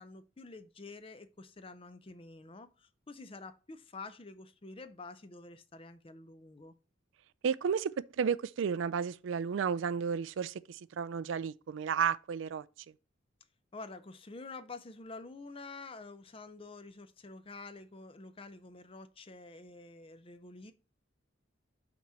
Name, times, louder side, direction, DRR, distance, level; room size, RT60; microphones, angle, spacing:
voice 1, 0.0-6.7 13.7-20.7, left 3 dB, 30° left, 0.5 m, -48 dB
voice 2, 7.4-12.7, right 6 dB, 75° right, 0.3 m, -32 dB
5.9 x 4.3 x 6.1 m
head